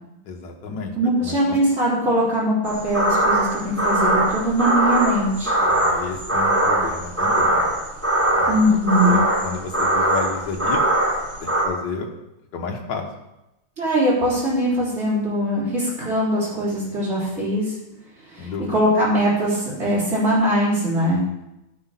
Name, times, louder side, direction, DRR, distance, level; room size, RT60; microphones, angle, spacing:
voice 1, 0.3-0.9 1.2-1.6 5.7-7.7 8.4-8.6 9.0-10.8 11.4-12.1 12.5-13.1 18.4-18.8, left 4 dB, 70° left, 2 dB, 1.9 m, -31 dB
voice 2, 1.0-5.5 8.5-9.2 13.8-17.7 18.3-21.2, equal, 35° right, -8 dB, 4.2 m, -21 dB
sound 1, 2.6-11.7, right 1 dB, 10° right, 1.1 m, -21 dB
9.9 x 6.1 x 5.7 m, 0.93 s
omnidirectional pair, 2.0 m